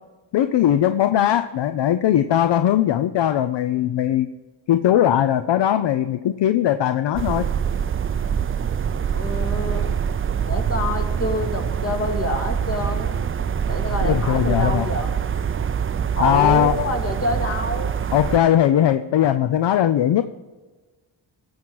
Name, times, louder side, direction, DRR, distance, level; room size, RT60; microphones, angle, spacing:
voice 1, 0.3-4.3 4.7-7.5 14.0-14.9 16.2-16.8 18.1-20.2, left 11 dB, 60° left, 11 dB, 0.6 m, -19 dB
sound 1, 7.1-18.4, right 7 dB, 30° right, 0.4 m, -24 dB
voice 2, 9.1-9.9 10.5-13.3 13.7-15.1 16.2-17.9, left 1 dB, 30° left, 3 dB, 2.1 m, -27 dB
14.0 x 7.5 x 4.7 m, 1.3 s
cardioid pair, 60°, 48 cm